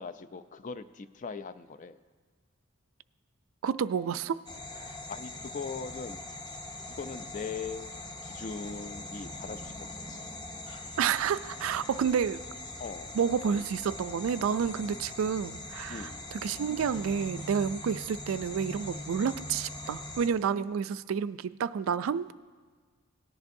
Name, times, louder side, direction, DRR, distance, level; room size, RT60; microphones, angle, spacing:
voice 1, 0.0-2.0 4.9-6.2 6.9-10.2 12.8-13.2 15.9-16.3 17.9-18.0, left 5 dB, 40° left, 12 dB, 0.4 m, -40 dB
voice 2, 3.6-4.4 11.0-12.4 13.1-22.3, right 7 dB, 85° right, 14 dB, 0.3 m, -30 dB
sound 1, 4.5-20.3, left 2 dB, 20° left, 0.8 m, -42 dB
18.0 x 10.5 x 2.6 m, 1.6 s
head